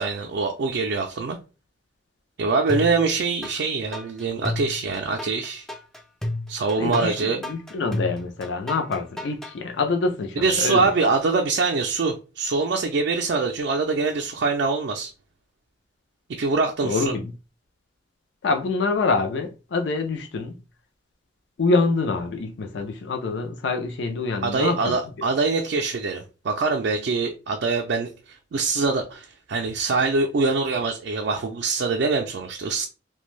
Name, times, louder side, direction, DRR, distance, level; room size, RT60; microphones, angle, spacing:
voice 1, 0.0-1.4 2.4-5.7 6.5-7.4 10.4-15.1 16.4-17.1 24.4-32.8, right 4 dB, 70° right, 0.4 m, -24 dB
sound 1, 2.7-3.5 3.9-9.5, left 1 dB, 5° left, 0.3 m, -32 dB
voice 2, 6.8-10.9 16.8-17.3 18.4-20.5 21.6-24.9, left 3 dB, 80° left, 0.4 m, -25 dB
2.5 x 2.2 x 3.0 m
head